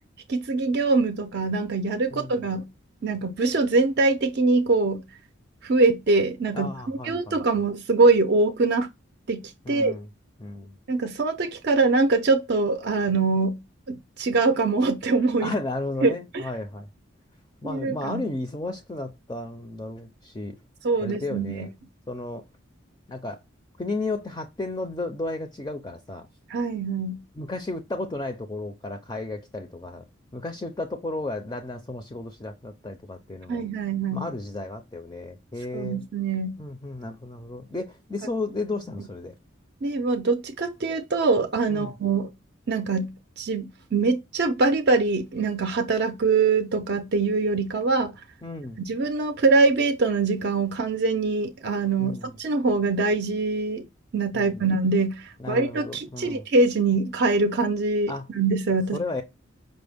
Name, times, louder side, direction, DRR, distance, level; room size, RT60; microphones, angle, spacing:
voice 1, 0.3-2.7 3.0-5.0 5.6-8.9 9.3-9.4 9.7-9.9 10.9-13.6 13.9-15.6 16.0-16.4 17.6-18.3 20.8-21.7 26.5-27.2 33.5-34.3 35.7-36.6 39.8-42.3 42.7-48.1 48.9-53.9 54.1-59.0, right 3 dB, 50° right, 0.5 m, -23 dB
voice 2, 2.1-2.4 6.5-7.4 9.6-10.1 10.4-10.8 15.4-16.9 17.6-20.6 21.0-21.7 22.1-22.4 23.1-23.4 23.8-26.3 27.4-30.0 30.3-33.6 34.1-36.0 36.6-39.3 41.7-41.9 48.4-48.8 52.0-52.3 54.3-54.6 55.4-56.4 58.1-58.3 58.9-59.2, left 2 dB, 20° left, 0.4 m, -33 dB
5.1 x 2.1 x 3.4 m
head